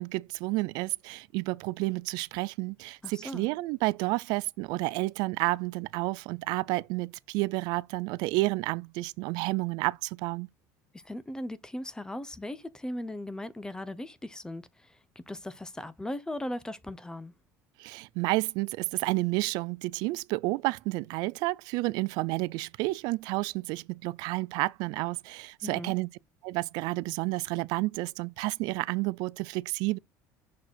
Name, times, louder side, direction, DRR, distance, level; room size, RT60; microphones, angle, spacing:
voice 1, 0.0-10.5 17.8-26.1 26.4-30.0, right 22 dB, 70° right, 0.4 m, -30 dB
voice 2, 3.0-3.5 11.0-17.3 25.6-25.9, left 1 dB, 10° left, 0.7 m, -38 dB
6.3 x 3.8 x 4.4 m
supercardioid pair, 100°, 7 cm